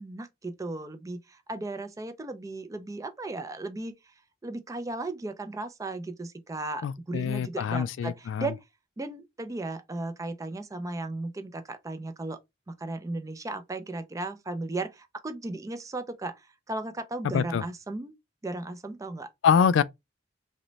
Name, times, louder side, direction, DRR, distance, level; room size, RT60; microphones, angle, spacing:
voice 1, 0.0-4.1 4.4-8.6 9.0-12.4 12.7-18.1 18.4-19.3, right 2 dB, 20° right, 0.4 m, -36 dB
voice 2, 6.8-8.5 17.3-17.6 19.4-19.8, left 7 dB, 80° left, 0.3 m, -24 dB
3.0 x 2.1 x 3.8 m
head